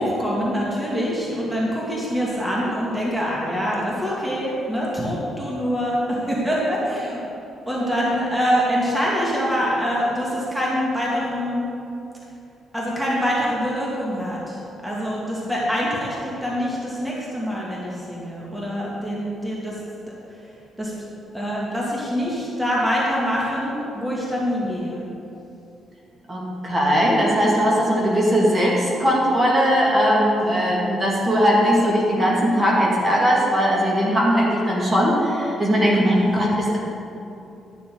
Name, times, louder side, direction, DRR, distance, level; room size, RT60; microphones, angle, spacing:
voice 1, 0.0-7.3 7.7-11.6 12.7-19.8 20.8-20.9 21.3-25.0, equal, 5° right, -5 dB, 2.1 m, -25 dB
voice 2, 26.3-36.8, equal, 25° right, -5 dB, 2.2 m, -19 dB
12.0 x 7.1 x 3.9 m, 2.7 s
cardioid pair, 90°, 0 cm